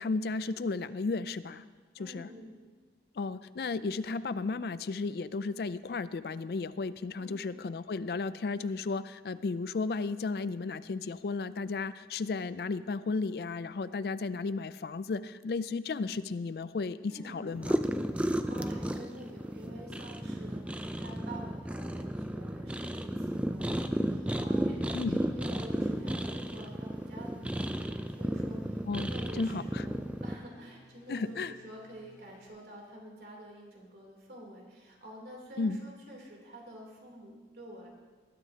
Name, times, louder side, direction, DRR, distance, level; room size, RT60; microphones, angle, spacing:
voice 1, 0.0-1.6 2.0-2.3 3.2-17.8 24.9-25.2 28.9-29.1 29.4-29.9 31.1-31.5 35.6-35.8, left 4 dB, 60° left, 15 dB, 0.4 m, -34 dB
voice 2, 2.0-2.5 7.1-7.5 17.1-17.4 18.2-37.9, right 1 dB, 65° right, -2 dB, 3.3 m, -48 dB
sound 1, 17.5-30.3, right 1 dB, 5° right, 0.4 m, -33 dB
sound 2, 25.2-32.5, equal, 45° left, 1.8 m, -60 dB
19.5 x 12.0 x 2.9 m, 1.4 s
head